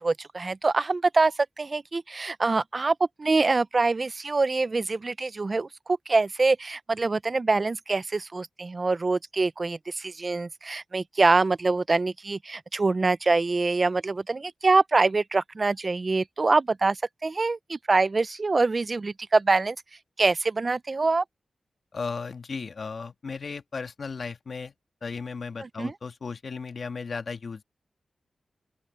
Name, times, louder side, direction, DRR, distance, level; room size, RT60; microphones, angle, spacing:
voice 1, 0.0-5.7 6.1-19.8 20.2-21.2 25.6-25.9, right 3 dB, 45° right, 0.6 m, -25 dB
voice 2, 21.9-24.7 25.0-27.6, left 5 dB, 65° left, 1.7 m, -35 dB
open air
cardioid pair, 55°, 0 cm